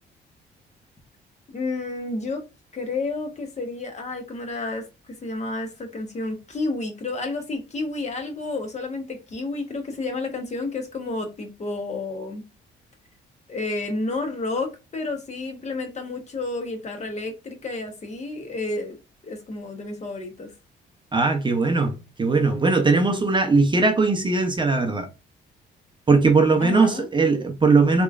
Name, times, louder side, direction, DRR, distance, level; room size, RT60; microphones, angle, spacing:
voice 1, 1.5-2.4 2.7-12.4 13.5-19.0 19.2-20.5 26.6-27.1, left 3 dB, 35° left, 0.8 m, -30 dB
voice 2, 21.1-25.1 26.1-28.0, right 3 dB, 25° right, 0.5 m, -19 dB
3.0 x 2.2 x 2.3 m
cardioid pair, 90°, 20 cm